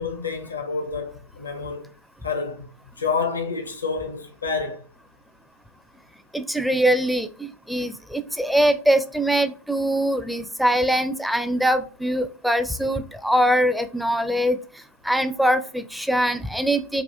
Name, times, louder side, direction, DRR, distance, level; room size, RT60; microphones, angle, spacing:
voice 1, 0.0-1.9 2.2-2.7 3.0-4.8, left 5 dB, 75° left, 0.7 m, -28 dB
voice 2, 6.3-14.6 15.0-17.0, right 1 dB, ahead, 0.4 m, -22 dB
4.8 x 2.4 x 3.3 m
figure-of-eight pair, 90°, 0 cm